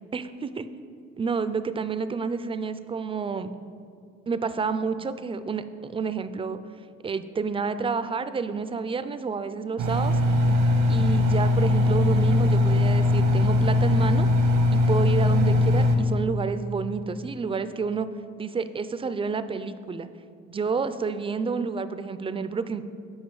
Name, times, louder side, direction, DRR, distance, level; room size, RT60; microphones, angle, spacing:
voice 1, 0.1-0.7 1.2-3.5 4.3-6.6 7.0-10.2 10.9-14.3 14.7-18.1 18.4-20.1 20.5-22.8, right 5 dB, 20° right, 12 dB, 0.3 m, -29 dB
Engine, 9.8-16.0, left 2 dB, 90° right, 1.0 m, -20 dB
8.1 x 5.1 x 4.7 m, 2.4 s
cardioid pair, 90°, 30 cm